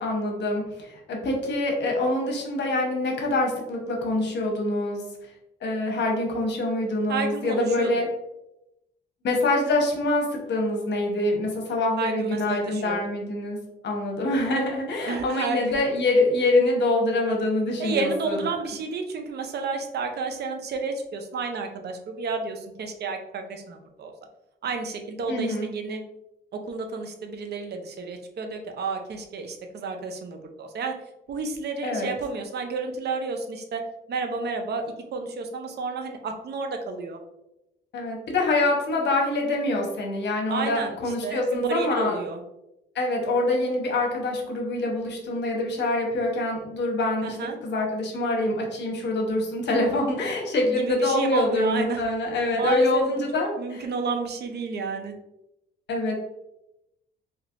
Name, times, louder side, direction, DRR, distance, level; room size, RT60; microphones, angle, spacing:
voice 1, 0.0-5.0 5.6-8.1 9.2-13.6 13.8-18.4 25.3-25.7 31.8-32.1 37.9-42.2 42.9-47.4 47.6-53.5 55.9-56.2, left 2 dB, 60° left, 1 dB, 0.9 m, -25 dB
voice 2, 7.1-7.9 12.0-13.0 15.0-15.7 17.8-24.1 24.6-26.0 26.5-31.0 31.3-33.8 34.1-37.2 40.5-42.4 47.2-47.6 50.6-52.1 52.6-53.3 53.6-55.2, right 4 dB, 55° right, 4 dB, 0.5 m, -31 dB
3.3 x 2.9 x 2.4 m, 0.88 s
cardioid pair, 90°, 20 cm